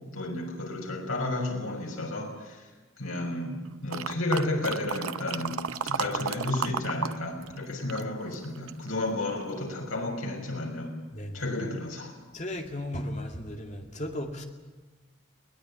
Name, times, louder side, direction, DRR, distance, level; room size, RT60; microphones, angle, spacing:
voice 1, 0.1-2.7 3.0-10.9 11.3-12.1, left 2 dB, 85° left, 1 dB, 6.0 m, -32 dB
sound 1, 3.9-7.2 7.4-8.9 9.4-9.5, right 6 dB, 85° right, 0.7 m, -33 dB
voice 2, 12.3-14.4, left 1 dB, 35° left, 3 dB, 2.3 m, -35 dB
22.0 x 19.5 x 9.8 m, 1.2 s
head